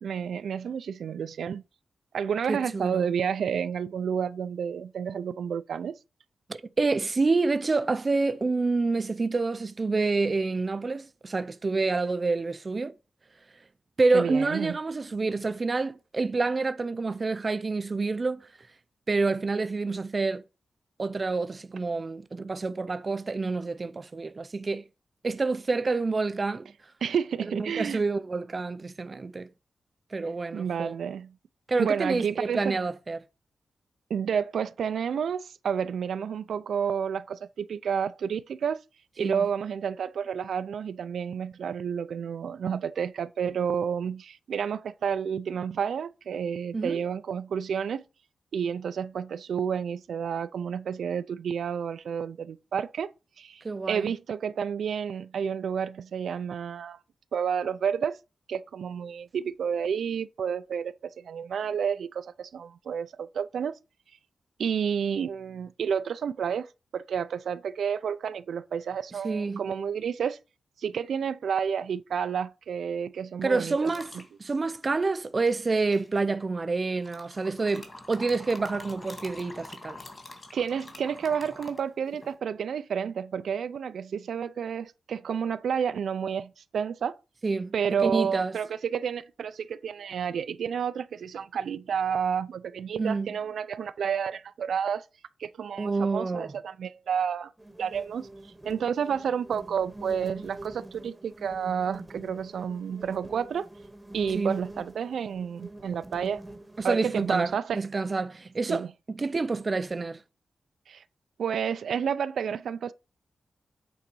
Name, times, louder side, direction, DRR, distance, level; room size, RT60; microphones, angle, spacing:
voice 1, 0.0-1.6 2.1-6.0 14.1-14.8 27.0-28.0 30.5-31.3 31.8-32.8 34.1-38.8 39.2-48.0 48.5-53.1 53.4-57.0 57.3-58.2 58.5-63.8 64.6-66.7 66.9-70.4 70.8-73.9 80.5-87.2 87.7-95.0 95.4-97.5 97.8-98.3 98.6-103.7 104.1-106.5 106.8-107.8 108.7-108.9 110.9-111.0 111.4-112.9, right 7 dB, 80° right, 0.4 m, -30 dB
voice 2, 2.5-3.1 6.5-12.9 14.0-18.5 19.1-20.4 21.0-24.8 25.2-26.7 27.5-29.5 30.1-30.9 31.7-33.2 39.2-39.5 46.7-47.0 53.6-54.1 69.2-69.6 73.4-74.1 74.4-80.0 87.4-87.7 88.0-88.5 93.0-93.3 95.8-96.5 104.3-104.6 106.8-110.2, right 3 dB, 30° right, 0.5 m, -28 dB
sound 1, 73.8-74.3 75.5-76.2 77.0-82.3, left 2 dB, 30° left, 1.9 m, -45 dB
sound 2, 97.6-107.5, right 1 dB, 10° right, 1.0 m, -46 dB
8.7 x 4.0 x 6.1 m
wide cardioid pair, 175°, 0 cm